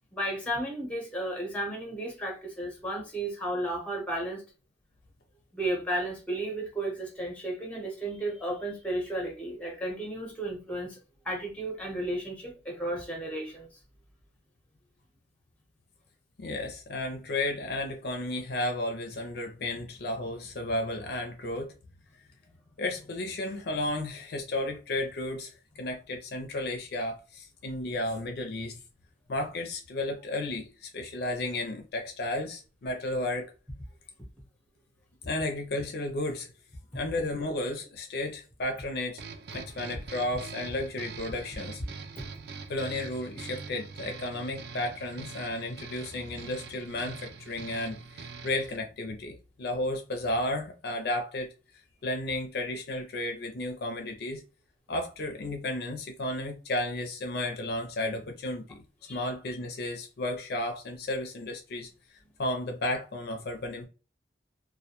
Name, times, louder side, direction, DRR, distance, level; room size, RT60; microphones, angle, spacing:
voice 1, 0.1-4.4 5.5-11.0 11.2-13.7 59.0-59.2, right 1 dB, 5° left, 0.8 m, -33 dB
voice 2, 16.4-21.7 22.8-28.8 29.3-33.5 35.3-36.5 36.9-39.2 39.5-41.8 42.7-51.5 52.0-54.4 54.9-58.8 59.1-61.9 62.4-63.9, left 1 dB, 55° left, 0.5 m, -33 dB
sound 1, 39.2-48.8, right 5 dB, 55° right, 0.3 m, -43 dB
2.2 x 2.2 x 2.8 m
head